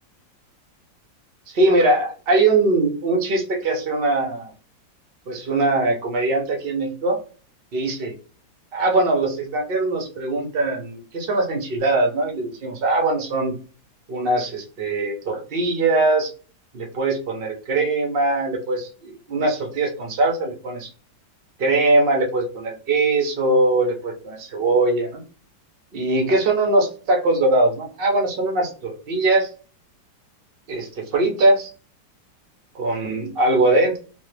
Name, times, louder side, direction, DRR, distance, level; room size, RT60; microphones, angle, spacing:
voice 1, 1.5-4.5 5.3-7.2 7.7-8.2 8.7-13.5 14.1-16.3 16.7-20.9 21.6-25.2 25.9-29.5 30.7-31.7 32.7-34.0, right 2 dB, 65° right, 0 dB, 0.5 m, -21 dB
3.2 x 2.0 x 3.2 m, 0.37 s
omnidirectional pair, 2.0 m